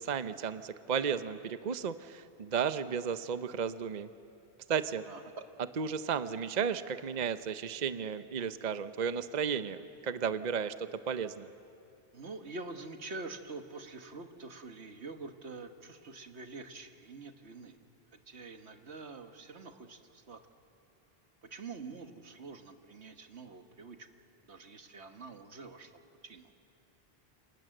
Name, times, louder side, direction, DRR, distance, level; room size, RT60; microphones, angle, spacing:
voice 1, 0.0-4.1 4.7-5.0 5.8-11.5, right 7 dB, 45° right, 12 dB, 0.8 m, -34 dB
voice 2, 5.1-5.5 12.1-17.8 18.3-20.4 21.5-24.1 24.4-26.5, right 3 dB, 85° right, 7 dB, 1.7 m, -46 dB
29.0 x 27.0 x 7.8 m, 2.7 s
omnidirectional pair, 1.1 m